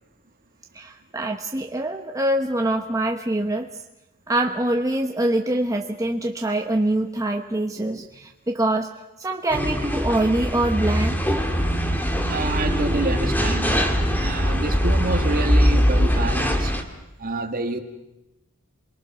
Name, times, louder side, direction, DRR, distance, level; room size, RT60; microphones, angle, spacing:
voice 1, 0.7-3.7 4.3-8.9 9.2-11.2, right 1 dB, 15° right, 1.0 m, -24 dB
sound 1, 9.5-16.8, equal, 10° left, 2.0 m, -22 dB
voice 2, 12.3-16.8 17.2-17.8, right 2 dB, 45° right, 2.0 m, -28 dB
28.0 x 22.0 x 6.2 m
head